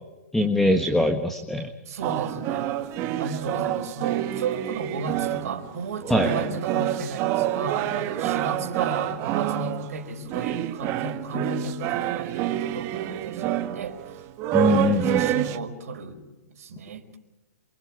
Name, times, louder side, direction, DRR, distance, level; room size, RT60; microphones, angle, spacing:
voice 1, 0.3-1.7 6.1-6.3 14.5-15.2, left 1 dB, 5° left, 7 dB, 1.4 m, -22 dB
voice 2, 1.9-2.7 3.2-14.0 14.7-16.2 16.5-17.0, right 4 dB, 65° right, 5 dB, 4.8 m, -34 dB
sound 1, 2.0-5.7 6.0-15.6, right 12 dB, 35° right, 1.7 m, -27 dB
28.0 x 26.0 x 4.8 m, 1.1 s
hypercardioid pair, 135°, 9 cm